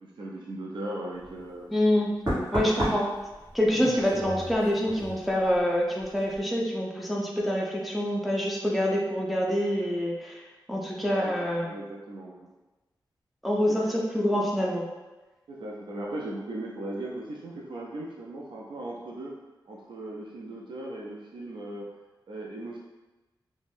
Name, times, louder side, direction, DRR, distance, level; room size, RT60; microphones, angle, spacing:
voice 1, 0.0-1.7 11.1-12.5 13.7-14.0 15.5-19.3 19.7-21.9 22.3-22.8, right 1 dB, 80° right, -3 dB, 0.4 m, -38 dB
Knock, 1.2-1.4 2.3-5.7 6.0-6.4, equal, 45° right, 1.1 m, -33 dB
voice 2, 1.7-2.1 2.5-3.1 3.5-10.4 10.7-11.7 13.4-14.9, equal, ahead, -3 dB, 0.4 m, -26 dB
2.5 x 2.1 x 3.3 m, 1.1 s
wide cardioid pair, 125°, 8 cm